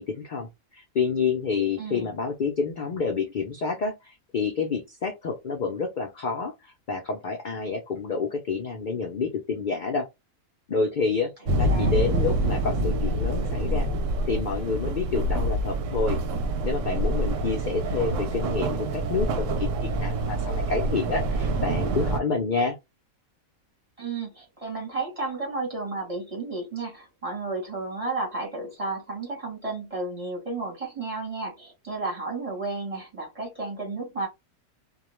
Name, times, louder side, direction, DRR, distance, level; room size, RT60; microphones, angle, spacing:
voice 1, 0.0-10.1 10.7-11.3 11.6-13.9 14.3-16.2 16.6-22.8, left 4 dB, 65° left, 0.4 m, -28 dB
voice 2, 1.8-2.1 11.4-11.9 24.0-34.3, right 3 dB, 30° right, 0.9 m, -32 dB
sound 1, 11.4-22.2, right 1 dB, 70° right, 0.9 m, -26 dB
2.3 x 2.3 x 3.0 m
omnidirectional pair, 1.5 m